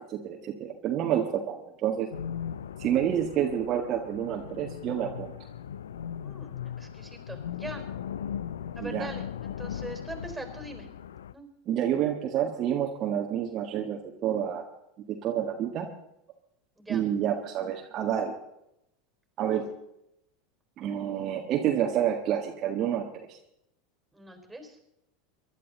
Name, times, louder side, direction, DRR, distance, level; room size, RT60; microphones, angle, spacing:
voice 1, 0.0-2.1 2.8-5.3 8.8-9.1 11.7-14.6 15.1-15.9 16.9-18.3 19.4-19.7 20.8-23.4, right 10 dB, 45° right, 2 dB, 1.7 m, -29 dB
sound 1, 2.1-11.3, left 9 dB, 75° left, 0.5 m, -38 dB
voice 2, 6.2-7.8 8.7-10.9 11.3-11.5 16.8-17.0 24.1-24.8, right 2 dB, 5° right, 5 dB, 4.3 m, -42 dB
23.5 x 11.5 x 4.0 m, 0.79 s
hypercardioid pair, 85°, 0 cm